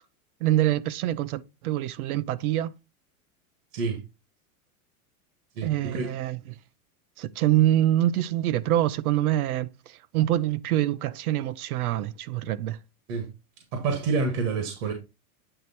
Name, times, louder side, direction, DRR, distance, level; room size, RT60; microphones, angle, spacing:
voice 1, 0.4-2.7 5.6-6.6 7.2-12.8, right 13 dB, 80° right, 0.8 m, -25 dB
voice 2, 5.6-6.1 13.1-13.3 13.7-14.9, right 4 dB, 60° right, 1.8 m, -28 dB
8.9 x 3.2 x 4.2 m
supercardioid pair, 155°, 44 cm